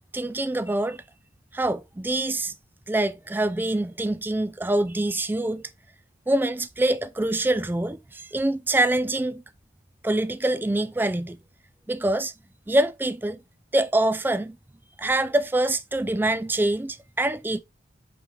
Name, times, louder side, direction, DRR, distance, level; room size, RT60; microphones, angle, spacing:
voice 1, 0.1-1.0 1.5-2.5 2.9-5.7 6.3-9.4 10.0-11.4 11.9-12.3 12.7-13.4 13.7-14.6 15.0-17.6, right 1 dB, 10° right, 0.3 m, -25 dB
8.3 x 3.7 x 3.1 m
head